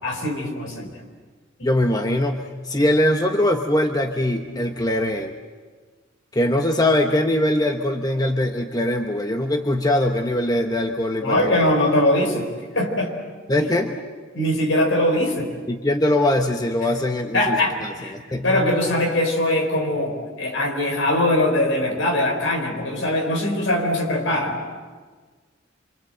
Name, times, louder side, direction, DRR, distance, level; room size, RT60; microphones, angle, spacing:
voice 1, 0.0-0.9 1.6-1.7 4.5-4.6 11.2-12.5 12.7-13.2 13.6-13.7 14.3-15.5 17.3-24.8, left 1 dB, 70° left, 3 dB, 4.8 m, -22 dB
voice 2, 1.6-5.3 6.3-11.5 13.5-13.9 15.7-18.7, left 1 dB, 20° left, 4 dB, 1.1 m, -22 dB
26.5 x 25.0 x 7.8 m, 1.5 s
head